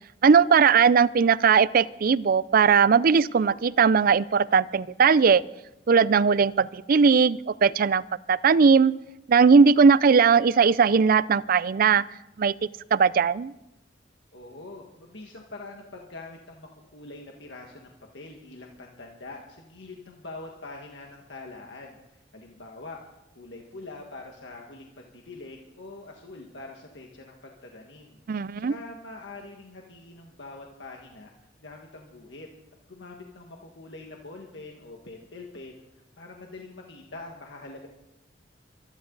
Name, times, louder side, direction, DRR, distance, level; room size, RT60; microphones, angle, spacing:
voice 1, 0.2-5.4 5.9-8.0 8.3-8.9 9.3-12.0 12.4-12.5 12.9-13.5 28.3-28.7, right 5 dB, 50° right, 19 dB, 0.4 m, -19 dB
voice 2, 14.3-23.0 23.4-31.3 31.6-32.5 32.9-37.9, left 2 dB, 75° left, 1 dB, 1.7 m, -44 dB
24.0 x 11.0 x 4.0 m, 0.89 s
head